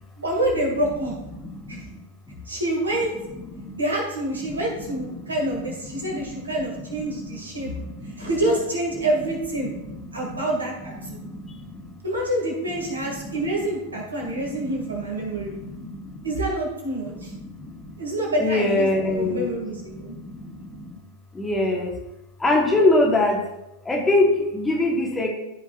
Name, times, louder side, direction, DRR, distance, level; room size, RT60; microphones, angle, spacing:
voice 1, 0.2-1.1 1.7-1.8 2.5-3.1 3.7-7.7 8.2-9.7 10.1-11.2 12.0-15.5 16.2-17.3 18.0-20.1, right 1 dB, 75° right, -2 dB, 2.4 m, -27 dB
voice 2, 1.3-1.8 3.6-3.8 4.4-4.5 5.0-5.3 5.6-7.4 7.6-8.3 9.9-10.4 11.0-11.9 13.0-13.4 14.2-16.2 17.1-17.9 18.4-20.9 21.3-21.9 22.4-23.4 23.8-25.3, left 2 dB, 10° left, 0 dB, 1.5 m, -25 dB
13.5 x 5.7 x 2.6 m, 0.92 s
figure-of-eight pair, 90°, 0 cm